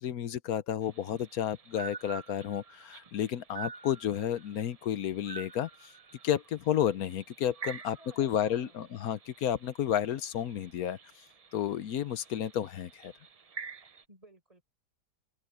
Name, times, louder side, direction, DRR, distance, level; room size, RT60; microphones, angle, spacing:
voice 1, 0.0-5.7 6.2-11.0 11.5-13.1, left 10 dB, 65° left, 1.2 m, -31 dB
sound 1, 0.8-14.0, right 6 dB, 55° right, 0.4 m, -48 dB
voice 2, 7.6-8.9 14.1-14.6, equal, 20° right, 5.8 m, -57 dB
open air
omnidirectional pair, 1.8 m